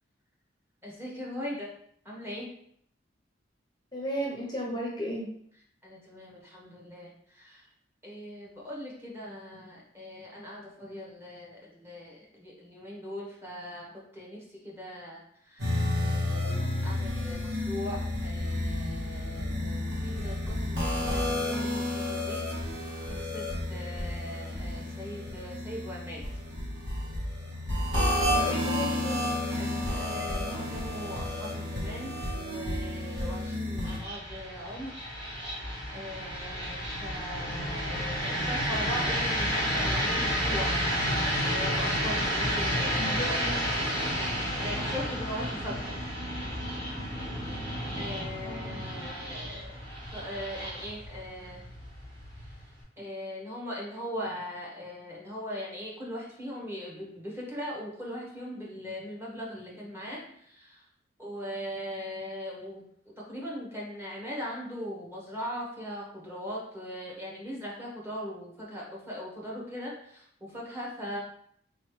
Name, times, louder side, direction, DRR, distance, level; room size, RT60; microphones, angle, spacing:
voice 1, 0.8-1.7 2.0-2.5 5.8-7.7 8.0-15.8 16.0-23.4 23.7-26.2 28.2-28.5 29.6-35.0 35.2-40.8 41.4-43.4 44.1-46.0 47.5-49.8 50.1-51.7 52.4-60.8 61.2-62.8 63.2-71.2, equal, 15° right, -4 dB, 1.0 m, -40 dB
voice 2, 3.9-5.3 28.2-29.2 42.7-43.6 48.4-48.8, equal, 25° left, -3 dB, 0.6 m, -35 dB
sound 1, 15.6-34.0, left 1 dB, 65° right, 1.4 m, -31 dB
sound 2, 33.8-52.8, equal, 30° right, 1.5 m, -31 dB
3.8 x 3.0 x 3.1 m, 0.67 s
head